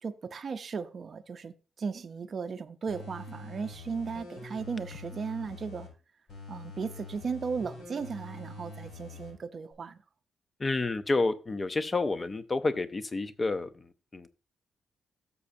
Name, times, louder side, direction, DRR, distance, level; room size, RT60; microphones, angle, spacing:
voice 1, 0.0-5.9 6.5-10.0, right 5 dB, 40° right, 0.6 m, -36 dB
sound 1, 2.9-5.9 6.3-9.3 9.7-9.8, left 3 dB, 80° left, 4.9 m, -45 dB
voice 2, 10.6-13.8 14.1-14.3, left 3 dB, 25° left, 0.6 m, -29 dB
13.5 x 7.0 x 2.7 m
wide cardioid pair, 150°, 0 cm